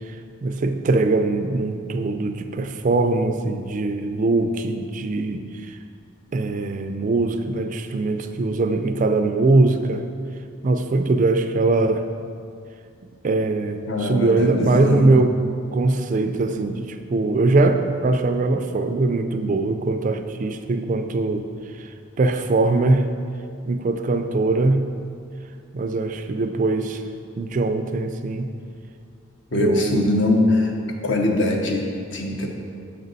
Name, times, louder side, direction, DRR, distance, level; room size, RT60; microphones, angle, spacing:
voice 1, 0.0-5.8 6.3-10.1 10.6-12.1 13.2-15.4 15.7-23.1 23.7-24.9 25.7-27.0 27.4-28.5 29.5-30.1, right 2 dB, 35° right, 7 dB, 0.3 m, -21 dB
voice 2, 13.9-15.2 29.5-30.7 31.0-32.5, left 2 dB, 60° left, 1 dB, 0.8 m, -22 dB
6.7 x 5.2 x 4.0 m, 2.4 s
head